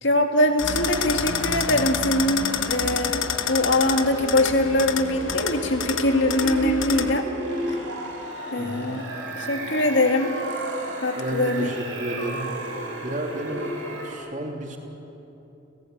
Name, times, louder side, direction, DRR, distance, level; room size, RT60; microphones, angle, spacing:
voice 1, 0.0-7.3 8.5-9.1 9.4-10.4 11.0-11.7, left 1 dB, 65° left, 5 dB, 2.2 m, -23 dB
sound 1, 0.6-7.2, left 7 dB, 85° left, 1.3 m, -29 dB
sound 2, 0.6-14.1, right 1 dB, 90° right, 7.3 m, -34 dB
voice 2, 8.6-8.9 11.1-12.5 13.0-13.7 14.0-14.8, right 1 dB, 40° right, 1 dB, 3.2 m, -32 dB
29.5 x 16.0 x 9.4 m, 2.9 s
head